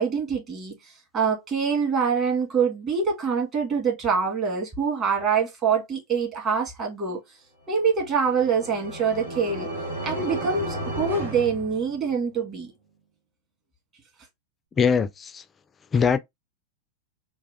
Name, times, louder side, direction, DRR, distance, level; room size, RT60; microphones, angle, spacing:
voice 1, 0.0-7.2 7.7-9.7 10.0-12.7, right 6 dB, 30° right, 1.7 m, -25 dB
sound 1, 7.8-12.4, right 1 dB, 75° right, 1.8 m, -34 dB
voice 2, 14.8-15.4 15.9-16.2, left 6 dB, 20° left, 0.4 m, -21 dB
3.3 x 2.4 x 3.5 m
figure-of-eight pair, 90°, 0 cm